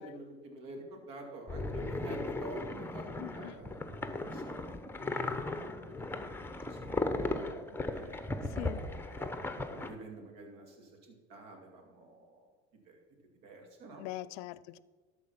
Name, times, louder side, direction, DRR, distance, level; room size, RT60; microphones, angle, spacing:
voice 1, 0.0-5.5 6.1-8.7 9.1-9.3 9.7-12.5 12.9-13.0 13.4-14.0, right 2 dB, 60° right, 2.7 m, -49 dB
sound 1, 1.5-9.9, left 2 dB, 5° left, 1.0 m, -37 dB
voice 2, 3.2-3.7 8.5-8.8 14.0-14.8, left 16 dB, 70° left, 0.5 m, -43 dB
13.0 x 4.7 x 5.8 m
hypercardioid pair, 85°, 36 cm